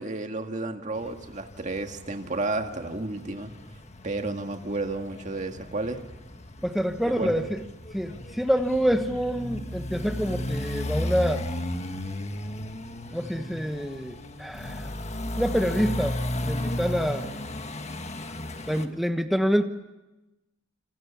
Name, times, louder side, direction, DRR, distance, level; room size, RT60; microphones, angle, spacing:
voice 1, 0.0-3.5 4.0-6.0 7.0-7.5, right 2 dB, 35° right, 5 dB, 1.9 m, -32 dB
sound 1, 0.9-18.9, left 1 dB, 30° left, 1.5 m, -35 dB
voice 2, 6.6-7.6 7.9-11.5 13.1-14.9 15.4-17.3 18.7-19.6, equal, ahead, 7 dB, 1.2 m, -27 dB
28.0 x 27.0 x 7.3 m, 1.0 s
head